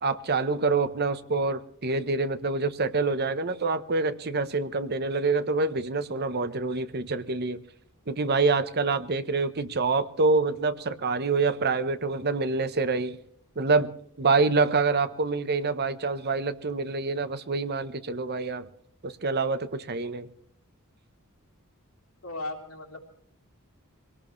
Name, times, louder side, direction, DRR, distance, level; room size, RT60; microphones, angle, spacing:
voice 1, 0.0-7.6 8.1-13.2 13.6-13.9 14.2-18.7 19.0-20.3, right 3 dB, 50° right, 12 dB, 1.0 m, -26 dB
voice 2, 22.2-23.0, left 2 dB, 90° left, 1 dB, 3.4 m, -36 dB
23.0 x 18.0 x 3.2 m, 0.65 s
head